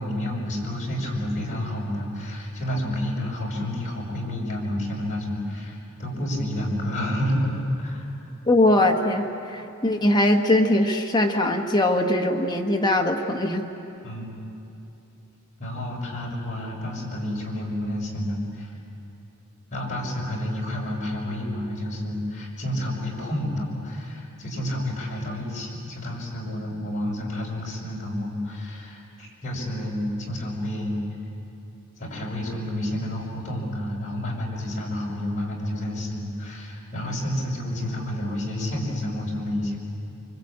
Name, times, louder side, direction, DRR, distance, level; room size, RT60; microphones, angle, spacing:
voice 1, 0.0-7.5 7.8-8.0 14.0-14.4 15.6-18.7 19.7-31.0 32.0-39.8, left 1 dB, 35° left, -3 dB, 6.1 m, -30 dB
voice 2, 8.5-13.7, left 1 dB, 20° left, 2 dB, 1.4 m, -21 dB
25.0 x 25.0 x 8.7 m, 2.7 s
head